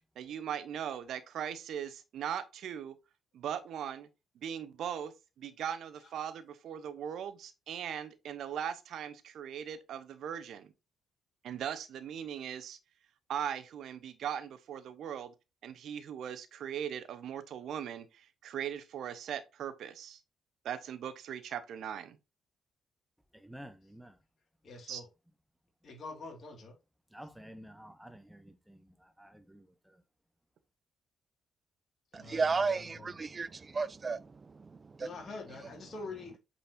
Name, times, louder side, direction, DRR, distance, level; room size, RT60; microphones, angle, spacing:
voice 1, 0.2-2.9 3.3-4.1 4.4-10.7 11.4-12.8 13.3-15.3 15.6-20.2 20.6-22.2 24.9-25.0, right 9 dB, 65° right, 0.8 m, -39 dB
voice 2, 23.4-24.1 27.1-28.8 29.2-29.7, equal, 5° right, 0.9 m, -50 dB
voice 3, 24.6-25.1 25.8-26.8 32.1-33.1 35.0-36.4, left 3 dB, 50° left, 2.2 m, -45 dB
voice 4, 32.1-34.3 35.0-35.1, right 4 dB, 35° right, 0.5 m, -32 dB
8.4 x 4.3 x 2.7 m
hypercardioid pair, 45°, 0 cm